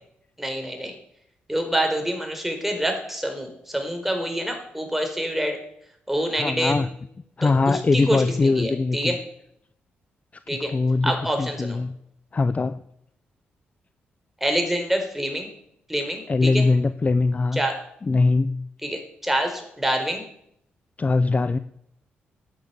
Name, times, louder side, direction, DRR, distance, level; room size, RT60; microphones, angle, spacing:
voice 1, 0.4-0.9 1.5-5.6 6.1-6.8 7.4-9.2 10.5-10.7 11.0-11.8 14.4-15.5 15.9-16.6 17.5-17.8 18.8-20.2, equal, 5° right, 4 dB, 4.5 m, -26 dB
voice 2, 6.3-6.9 7.4-9.2 10.5-11.9 12.3-12.8 16.3-17.6 18.0-18.7 21.0-21.6, left 3 dB, 35° left, 13 dB, 0.7 m, -22 dB
11.0 x 9.4 x 8.1 m, 0.73 s
supercardioid pair, 60°, 4 cm